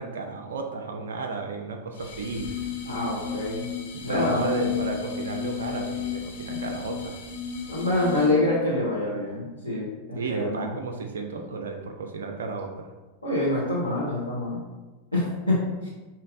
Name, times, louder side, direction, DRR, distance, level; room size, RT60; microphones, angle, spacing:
voice 1, 0.0-2.6 4.1-7.2 10.1-12.9, right 4 dB, 65° right, 3 dB, 0.4 m, -33 dB
sound 1, 2.0-8.5, left 8 dB, 55° left, 0.5 m, -33 dB
voice 2, 2.8-3.7 4.0-4.6 7.7-10.7 13.2-14.6 15.1-15.9, left 1 dB, 90° left, -10 dB, 1.0 m, -26 dB
5.0 x 2.7 x 2.5 m, 1.2 s
figure-of-eight pair, 90°, 0 cm